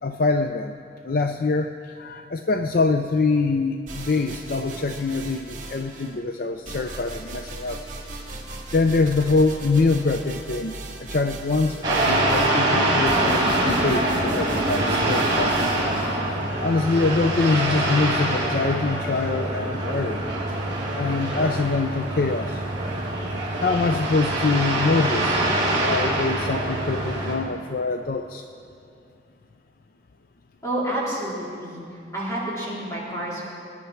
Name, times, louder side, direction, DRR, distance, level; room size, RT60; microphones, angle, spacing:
voice 1, 0.0-0.8 1.0-7.8 8.7-10.8 11.1-15.7 16.1-16.3 16.6-20.2 20.9-22.6 23.6-28.4, left 3 dB, 50° left, 7 dB, 0.5 m, -24 dB
sound 1, 3.9-6.2 6.6-16.1, right 2 dB, 40° right, 2.3 m, -38 dB
sound 2, 11.8-27.3, right 1 dB, 25° right, 4.3 m, -24 dB
voice 2, 30.6-31.8 32.1-33.5, right 1 dB, 15° left, -7 dB, 4.1 m, -29 dB
25.0 x 10.5 x 4.5 m, 2.5 s
head